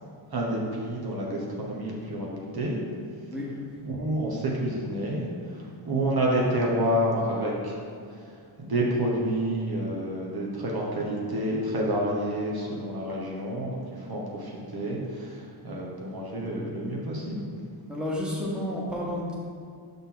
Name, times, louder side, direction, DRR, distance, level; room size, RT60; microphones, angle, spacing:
voice 1, 0.3-2.3 2.5-2.8 3.8-5.3 5.5-7.8 8.1-8.3 8.6-17.5, right 1 dB, 50° right, -3 dB, 1.3 m, -29 dB
voice 2, 17.9-19.3, left 1 dB, ahead, -5 dB, 1.4 m, -31 dB
5.9 x 5.4 x 3.9 m, 2.2 s
cardioid pair, 65°, 49 cm